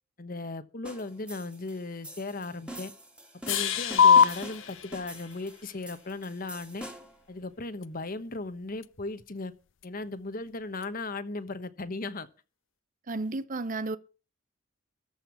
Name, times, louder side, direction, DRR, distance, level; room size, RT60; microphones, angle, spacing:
voice 1, 0.2-2.9 3.5-6.9 7.3-9.5 9.8-12.3, left 3 dB, 45° left, 1.1 m, -37 dB
sound 1, 0.8-7.2, right 1 dB, 5° right, 2.4 m, -45 dB
sound 2, 3.5-5.8, left 11 dB, 85° left, 1.5 m, -35 dB
sound 3, 4.0-11.0, left 6 dB, 65° left, 0.5 m, -28 dB
voice 2, 13.1-14.0, right 3 dB, 40° right, 0.7 m, -32 dB
14.0 x 5.5 x 8.3 m
head